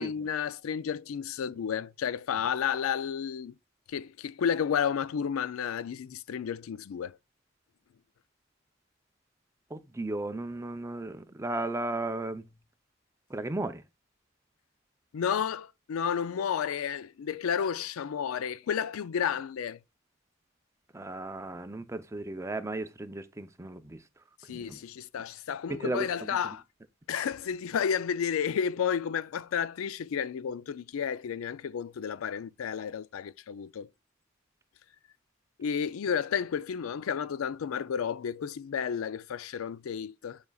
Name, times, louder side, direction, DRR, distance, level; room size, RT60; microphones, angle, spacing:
voice 1, 0.0-3.5 3.9-7.2 15.1-19.8 24.5-26.6 27.1-33.9 35.6-40.4, left 7 dB, 85° left, 0.4 m, -32 dB
voice 2, 9.7-12.5 13.3-13.8 20.9-24.0 24.5-24.8 25.7-26.4, right 2 dB, 15° right, 0.5 m, -35 dB
9.5 x 5.2 x 2.3 m
head